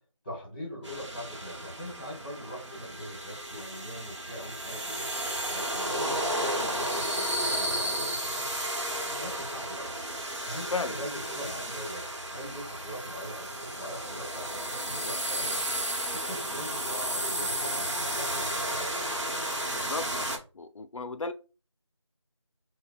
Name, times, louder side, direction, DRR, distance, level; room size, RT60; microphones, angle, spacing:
voice 1, 0.2-5.0 5.5-8.5 9.1-9.9 10.4-15.6 16.1-19.1, equal, 20° left, 1.0 m, -41 dB
sound 1, 0.8-20.4, right 1 dB, 65° right, 1.0 m, -33 dB
voice 2, 19.7-20.1 20.5-21.3, left 4 dB, 80° left, 0.4 m, -34 dB
4.2 x 2.1 x 2.4 m
figure-of-eight pair, 170°, 16 cm